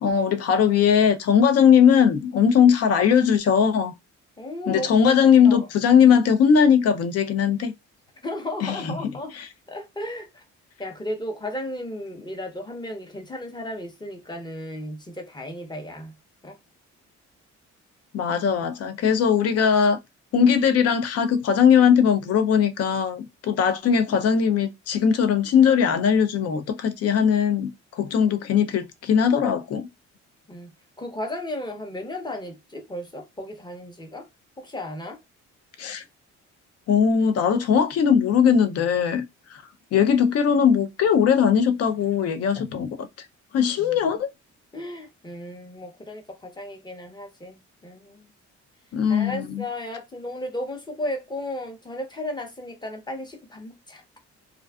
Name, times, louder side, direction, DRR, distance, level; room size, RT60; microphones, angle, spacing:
voice 1, 0.0-3.9 4.7-7.7 8.6-8.9 9.3-9.5 18.1-20.0 20.3-27.7 28.0-29.9 35.8-36.0 36.9-39.2 39.5-39.6 39.9-43.1 43.5-44.3 48.9-49.6, left 7 dB, 55° left, 0.5 m, -19 dB
voice 2, 4.4-5.2 5.4-5.7 8.2-9.3 9.7-10.4 10.8-16.1 16.4-16.6 30.5-30.7 31.0-34.3 34.6-35.2 43.8-44.0 44.7-48.2 49.1-54.0, left 1 dB, 15° left, 0.7 m, -34 dB
2.4 x 2.3 x 2.3 m
cardioid pair, 90°, 30 cm